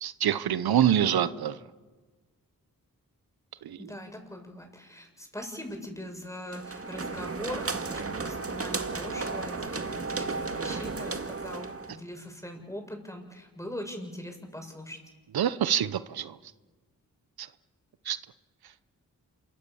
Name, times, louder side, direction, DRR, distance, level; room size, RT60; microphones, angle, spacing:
voice 1, 0.0-1.6 3.6-3.8 15.3-16.3 18.1-18.2, right 10 dB, 85° right, 15 dB, 0.9 m, -25 dB
voice 2, 3.7-15.0, left 1 dB, 10° left, 3 dB, 7.5 m, -41 dB
sound 1, 6.5-12.0, right 4 dB, 40° right, 2.1 m, -34 dB
27.5 x 25.0 x 7.1 m, 1.3 s
cardioid pair, 45°, 36 cm